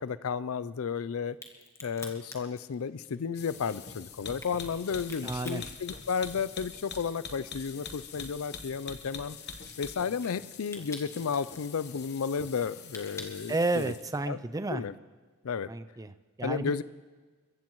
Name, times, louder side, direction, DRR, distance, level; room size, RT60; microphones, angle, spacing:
voice 1, 0.0-1.4 1.8-9.4 9.8-13.9 14.3-14.4 14.7-15.0 15.4-15.7 16.4-16.8, left 6 dB, 70° left, 16 dB, 0.4 m, -33 dB
Crack, 1.3-6.8 7.1-14.1, left 2 dB, 15° left, 1.5 m, -48 dB
sound 1, 3.3-14.2, left 5 dB, 50° left, 1.0 m, -45 dB
voice 2, 5.2-5.6 13.5-14.8 15.7-16.7, right 2 dB, 15° right, 12 dB, 0.4 m, -31 dB
29.0 x 15.0 x 3.1 m, 1.4 s
head